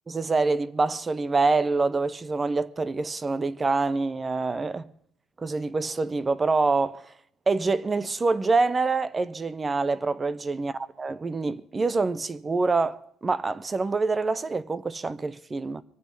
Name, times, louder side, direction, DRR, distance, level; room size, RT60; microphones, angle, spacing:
voice 1, 0.1-4.9 5.4-7.1 7.5-15.8, right 3 dB, 15° right, 0.5 m, -26 dB
23.5 x 9.0 x 5.2 m
cardioid pair, 180°, 0 cm